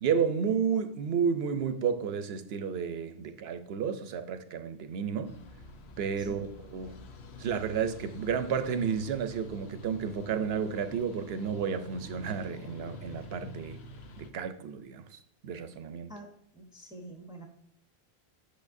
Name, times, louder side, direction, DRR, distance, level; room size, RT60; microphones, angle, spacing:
voice 1, 0.0-5.4 6.0-6.5 6.7-7.0 7.4-13.8 14.2-16.1, right 7 dB, 75° right, 0.9 m, -31 dB
sound 1, 5.2-14.3, left 2 dB, 85° left, 1.0 m, -47 dB
voice 2, 6.2-6.5 16.1-17.5, right 1 dB, 5° right, 0.8 m, -47 dB
8.5 x 6.3 x 2.6 m
omnidirectional pair, 1.1 m